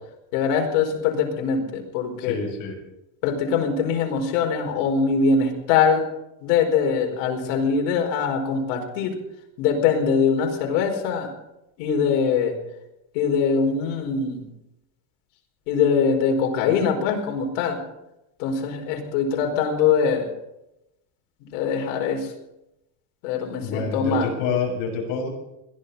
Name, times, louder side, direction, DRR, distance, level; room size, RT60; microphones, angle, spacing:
voice 1, 0.3-2.4 3.2-6.1 6.4-9.2 9.6-11.3 11.8-12.6 13.1-14.5 15.7-17.8 18.4-20.3 21.4-22.3 23.2-24.3, left 6 dB, 85° left, 2 dB, 4.9 m, -22 dB
voice 2, 2.2-2.8 23.6-25.3, left 5 dB, 60° left, -1 dB, 7.2 m, -27 dB
21.5 x 14.5 x 4.2 m, 0.88 s
cardioid pair, 165°, 37 cm